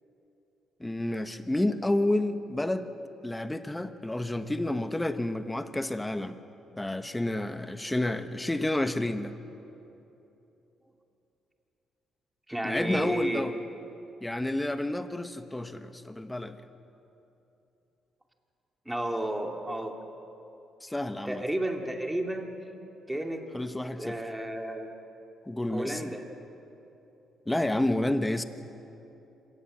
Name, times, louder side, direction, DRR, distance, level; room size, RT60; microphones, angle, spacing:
voice 1, 0.8-2.9 3.2-6.4 6.8-9.3 12.6-13.5 14.2-16.6 20.8-21.4 23.5-24.2 25.5-26.1 27.5-28.4, left 1 dB, 10° left, 9 dB, 1.2 m, -30 dB
voice 2, 12.5-13.5 18.9-20.0 21.3-22.6 23.1-23.4 24.0-24.9 25.7-26.3, right 1 dB, 10° right, 2 dB, 2.6 m, -32 dB
26.0 x 18.5 x 7.5 m, 3.0 s
cardioid pair, 90°, 0 cm